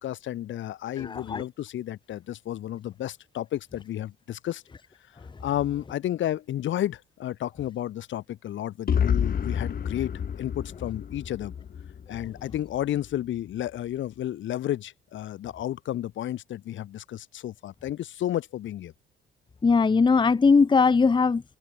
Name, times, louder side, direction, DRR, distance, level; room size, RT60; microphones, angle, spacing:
voice 1, 0.0-4.6 5.4-10.1 10.4-11.6 12.1-18.9, left 12 dB, 75° left, 1.8 m, -32 dB
voice 2, 1.0-1.4 19.6-21.4, left 4 dB, 25° left, 0.8 m, -20 dB
sound 1, 8.9-12.8, left 8 dB, 50° left, 1.7 m, -29 dB
cardioid pair, 90°, 20 cm